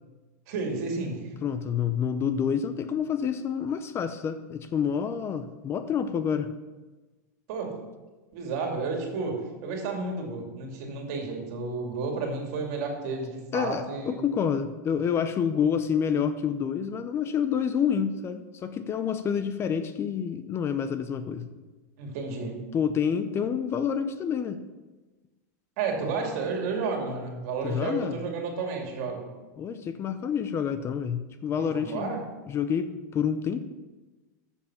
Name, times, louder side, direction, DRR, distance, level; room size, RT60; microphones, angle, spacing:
voice 1, 0.5-1.3 7.5-7.8 8.3-14.2 22.0-22.7 25.8-29.3 31.6-32.2, right 4 dB, 60° right, 1 dB, 2.5 m, -32 dB
voice 2, 1.4-6.5 13.5-21.5 22.7-24.6 27.6-28.2 29.6-32.2 32.5-33.6, left 7 dB, 25° left, 10 dB, 0.6 m, -28 dB
7.3 x 7.2 x 5.8 m, 1.2 s
supercardioid pair, 130°, 9 cm